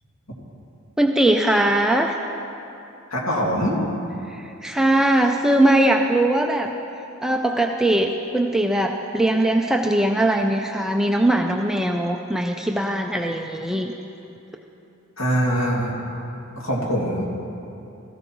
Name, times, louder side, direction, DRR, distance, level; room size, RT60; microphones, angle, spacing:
voice 1, 1.0-2.2 4.3-6.7 7.2-13.9, right 1 dB, ahead, 2 dB, 0.3 m, -20 dB
voice 2, 3.1-3.8 15.2-16.0 16.5-17.2, equal, 60° left, -4 dB, 2.3 m, -23 dB
16.5 x 14.5 x 3.0 m, 2.9 s
head